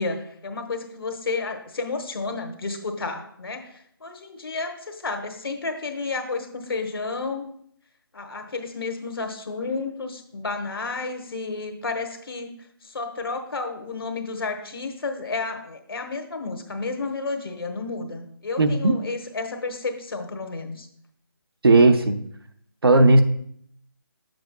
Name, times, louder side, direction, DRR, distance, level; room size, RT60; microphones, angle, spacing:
voice 1, 0.0-7.5 8.1-12.5 12.8-20.9, left 3 dB, 70° left, 6 dB, 1.2 m, -31 dB
voice 2, 18.6-19.0 21.6-22.2 22.8-23.2, right 2 dB, 80° right, 7 dB, 0.8 m, -16 dB
9.3 x 7.8 x 2.3 m, 0.67 s
hypercardioid pair, 170°, 12 cm